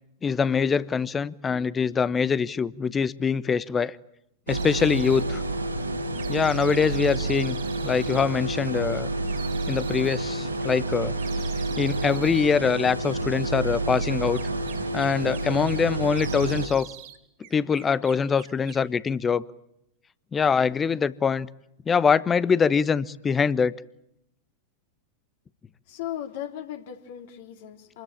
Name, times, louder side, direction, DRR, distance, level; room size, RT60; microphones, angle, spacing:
voice 1, 0.2-4.0 4.5-5.4 6.3-7.6 7.8-9.1 9.7-11.1 11.8-14.4 14.9-16.9 17.5-19.4 20.3-21.5 21.9-23.7, left 6 dB, 20° left, 1.0 m, -24 dB
sound 1, 4.5-5.3 6.1-8.3 9.3-10.3 11.2-12.5 14.0-15.8 16.1-17.2 17.4-18.9, right 12 dB, 45° right, 3.4 m, -45 dB
sound 2, 4.5-16.7, right 2 dB, 85° right, 4.5 m, -29 dB
voice 2, 25.9-28.0, left 11 dB, 55° left, 3.2 m, -37 dB
27.5 x 21.0 x 8.6 m
figure-of-eight pair, 90°, 0 cm